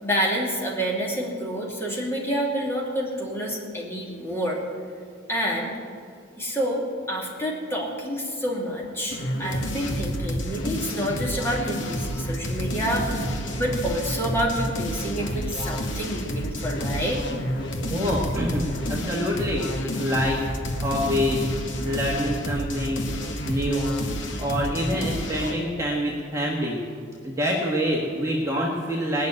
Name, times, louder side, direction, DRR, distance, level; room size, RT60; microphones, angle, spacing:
voice 1, 0.0-4.6 5.3-5.8 6.4-13.3 13.6-17.2, equal, 10° left, -3 dB, 2.6 m, -28 dB
sound 1, 9.1-25.6, equal, 65° left, 1.5 m, -30 dB
sound 2, 13.5-14.2 15.2-15.8 16.8-17.5 18.5-19.2 20.2-20.9 22.2-22.9, equal, 30° left, 3.0 m, -41 dB
voice 2, 17.9-18.6 18.9-20.4 20.8-21.5 21.8-23.1 23.4-24.0 24.4-26.8 27.2-29.3, equal, 15° right, -3 dB, 1.5 m, -26 dB
19.0 x 6.6 x 9.9 m, 2.2 s
head